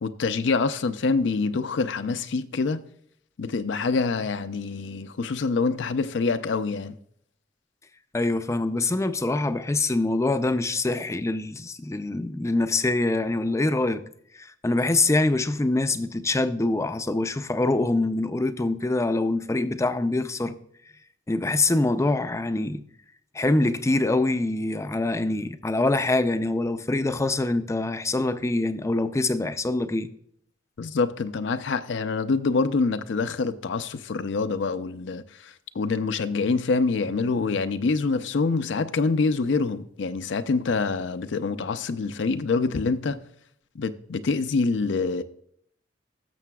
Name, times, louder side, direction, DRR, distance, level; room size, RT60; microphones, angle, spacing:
voice 1, 0.0-2.8 3.4-7.0 30.8-43.2 43.8-45.2, left 4 dB, 70° left, 0.5 m, -26 dB
voice 2, 8.1-14.0 14.4-20.5 21.3-22.8 23.3-30.1, left 2 dB, 15° left, 0.4 m, -24 dB
16.5 x 6.7 x 2.3 m
head